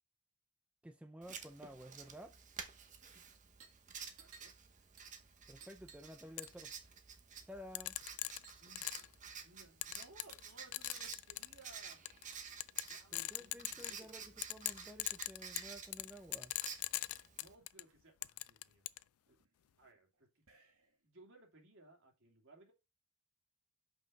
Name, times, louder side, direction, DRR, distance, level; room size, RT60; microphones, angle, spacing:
voice 1, 0.8-2.3 5.5-6.7 7.5-8.0 13.1-16.5, equal, 5° right, 0.5 m, -53 dB
Writing, 1.2-17.5, right 6 dB, 35° right, 1.0 m, -52 dB
sound 1, 3.6-3.8 4.1-6.2 6.4-6.8 7.4-7.6 8.2-8.7 9.0-9.2 10.2-12.5 13.5-14.6 15.8-15.9 16.2-16.8 17.3-17.4 17.6-18.1 18.6-21.1, right 6 dB, 80° right, 2.1 m, -63 dB
voice 2, 4.0-4.5 8.6-8.8 9.4-12.0 12.8-14.4 17.3-18.8 19.3-19.4 19.8-20.4 21.0-22.7, right 2 dB, 60° right, 2.6 m, -62 dB
sound 2, 6.4-6.5 7.8-9.1 9.8-10.5 10.7-11.6 12.1-12.2 12.6-14.1 14.4-17.8 18.2-19.0, left 18 dB, 80° left, 0.4 m, -40 dB
5.6 x 5.5 x 5.3 m
head